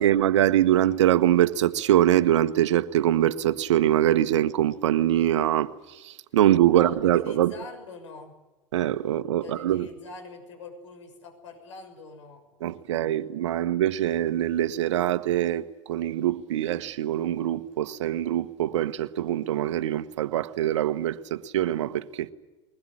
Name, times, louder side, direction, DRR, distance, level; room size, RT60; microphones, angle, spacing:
voice 1, 0.0-7.5 8.7-9.9 12.6-22.3, right 12 dB, 75° right, 1.3 m, -23 dB
voice 2, 6.7-8.3 9.4-13.6, left 4 dB, 75° left, 6.6 m, -45 dB
22.0 x 20.5 x 9.8 m
hypercardioid pair, 90°, 15 cm